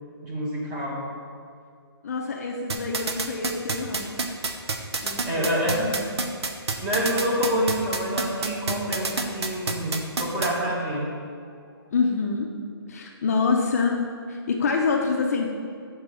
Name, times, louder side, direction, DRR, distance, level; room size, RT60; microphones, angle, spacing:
voice 1, 0.2-1.1 5.2-5.8 6.7-11.1, equal, 10° right, -4 dB, 1.0 m, -27 dB
voice 2, 2.0-4.2 5.0-6.1 11.9-12.5 12.9-15.5, left 4 dB, 35° left, 1 dB, 0.6 m, -26 dB
sound 1, 2.7-10.5, right 4 dB, 85° right, 0.8 m, -27 dB
6.8 x 4.5 x 6.2 m, 2.2 s
hypercardioid pair, 170°, 13 cm